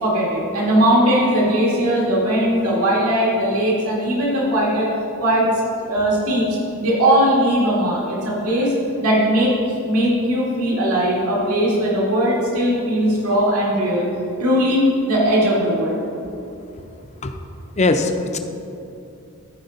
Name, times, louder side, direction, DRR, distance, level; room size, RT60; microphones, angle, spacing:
voice 1, 0.0-4.9 5.2-5.4 5.9-8.7 9.0-9.5 9.8-14.1 14.4-16.0, equal, 90° right, -5 dB, 2.0 m, -19 dB
voice 2, 17.8-18.4, left 3 dB, 30° left, 6 dB, 0.6 m, -19 dB
14.5 x 4.9 x 4.0 m, 2.7 s
head